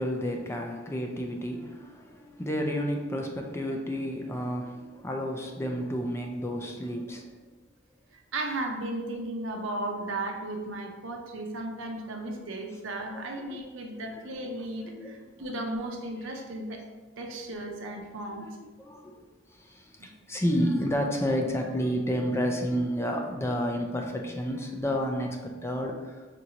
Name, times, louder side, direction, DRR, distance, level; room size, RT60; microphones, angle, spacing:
voice 1, 0.0-7.5 13.1-13.6 14.1-14.2 14.9-15.1 18.4-19.2 19.5-26.3, equal, 15° left, 2 dB, 0.4 m, -31 dB
voice 2, 8.3-16.8 17.2-18.5 20.0-20.1, right 2 dB, 75° right, 2 dB, 0.7 m, -35 dB
5.8 x 2.6 x 2.9 m, 1.3 s
head